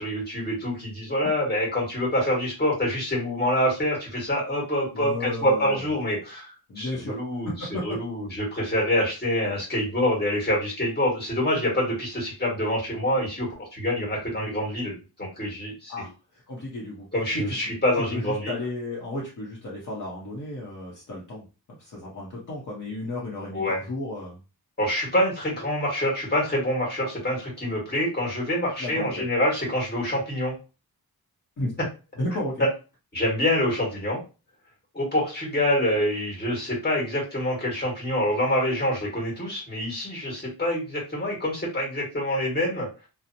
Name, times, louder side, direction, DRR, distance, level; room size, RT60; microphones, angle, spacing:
voice 1, 0.0-16.1 17.1-18.5 23.5-23.8 24.8-30.6 33.1-34.2 34.9-42.9, left 1 dB, 25° left, -4 dB, 1.4 m, -26 dB
voice 2, 4.9-5.8 6.7-7.2 7.4-8.0 15.9-17.1 17.3-17.5 18.1-21.4 21.8-24.4 28.8-29.2 31.6-31.7 32.2-32.6, left 1 dB, 50° left, -4 dB, 0.8 m, -33 dB
2.8 x 2.0 x 2.6 m, 0.31 s
wide cardioid pair, 125°, 38 cm